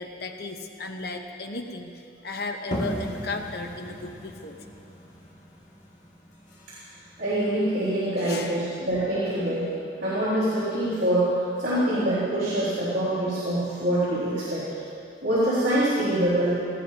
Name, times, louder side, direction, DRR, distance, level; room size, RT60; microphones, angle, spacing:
voice 1, 0.0-4.6 8.2-8.5, left 3 dB, 60° left, 4 dB, 0.9 m, -35 dB
sound 1, 2.7-8.2, equal, 40° left, 2.0 m, -37 dB
voice 2, 7.2-9.7 10.0-14.7 15.2-16.6, right 1 dB, 55° right, -11 dB, 3.7 m, -25 dB
18.0 x 15.5 x 2.9 m, 2.5 s
head